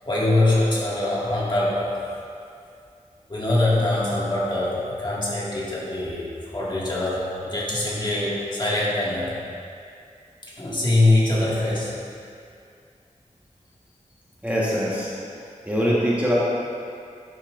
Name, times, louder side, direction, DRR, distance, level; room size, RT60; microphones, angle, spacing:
voice 1, 0.0-2.0 3.3-9.3 10.4-12.0, left 2 dB, 35° left, -7 dB, 1.9 m, -23 dB
voice 2, 14.4-15.1 15.6-16.3, equal, 10° right, -7 dB, 1.3 m, -22 dB
11.5 x 5.7 x 2.5 m, 2.4 s
wide cardioid pair, 70°, 13 cm